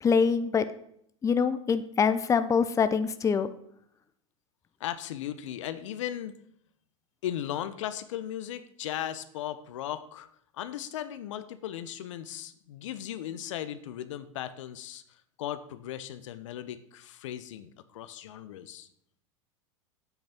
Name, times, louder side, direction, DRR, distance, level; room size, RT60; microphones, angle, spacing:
voice 1, 0.0-0.6 1.2-3.5, left 6 dB, 20° left, 12 dB, 0.7 m, -24 dB
voice 2, 4.8-6.4 7.2-10.3 10.5-15.0 15.4-18.9, left 11 dB, 70° left, 12 dB, 1.0 m, -37 dB
8.8 x 8.4 x 6.0 m, 0.69 s
hypercardioid pair, 100°, 16 cm